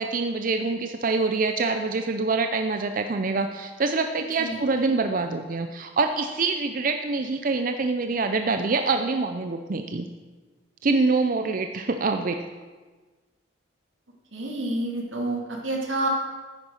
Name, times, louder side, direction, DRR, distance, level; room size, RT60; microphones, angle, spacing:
voice 1, 0.0-10.1 10.8-12.4, right 3 dB, 45° right, 6 dB, 0.5 m, -25 dB
voice 2, 4.4-4.9 14.3-16.1, right 2 dB, 90° right, 0 dB, 2.6 m, -29 dB
10.0 x 9.4 x 6.4 m, 1.4 s
head